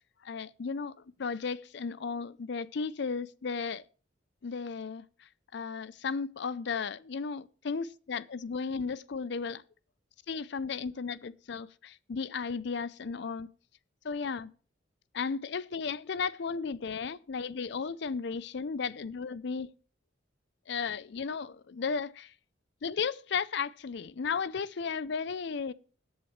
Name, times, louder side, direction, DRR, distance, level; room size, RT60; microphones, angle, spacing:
voice 1, 0.2-0.9 1.2-3.8 4.4-5.0 5.5-9.6 10.3-13.5 14.0-14.5 15.1-19.7 20.7-22.3 22.8-25.7, left 5 dB, 65° left, 0.5 m, -34 dB
21.0 x 8.1 x 3.1 m
head